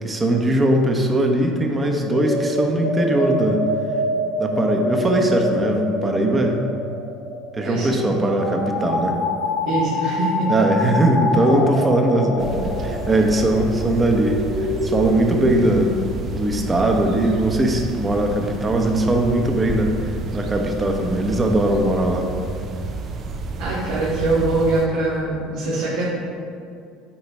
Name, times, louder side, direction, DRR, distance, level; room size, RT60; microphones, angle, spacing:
voice 1, 0.0-3.6 4.4-6.6 7.5-9.2 10.5-14.4 14.8-15.9 16.3-19.9 20.3-22.3, right 1 dB, 20° right, 2 dB, 1.0 m, -20 dB
sound 1, 1.7-15.0, left 1 dB, 80° left, 1.2 m, -26 dB
voice 2, 9.6-10.5 23.6-26.1, right 2 dB, 70° right, -8 dB, 1.8 m, -23 dB
sound 2, 12.4-24.9, right 3 dB, 45° right, 0.7 m, -31 dB
8.7 x 3.9 x 4.7 m, 2.4 s
supercardioid pair, 95°, 0 cm